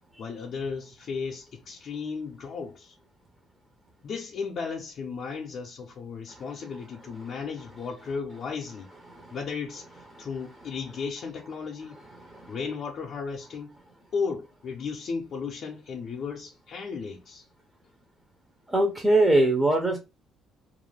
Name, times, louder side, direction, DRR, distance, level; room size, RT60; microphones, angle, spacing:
voice 1, 0.2-2.9 4.0-8.9 9.3-9.9 10.2-12.0 12.5-13.7 14.1-17.5, left 5 dB, 55° left, 0.5 m, -35 dB
voice 2, 12.2-12.5 18.7-20.0, right 2 dB, 15° right, 0.6 m, -22 dB
2.4 x 2.1 x 3.1 m
cardioid pair, 120°, 0 cm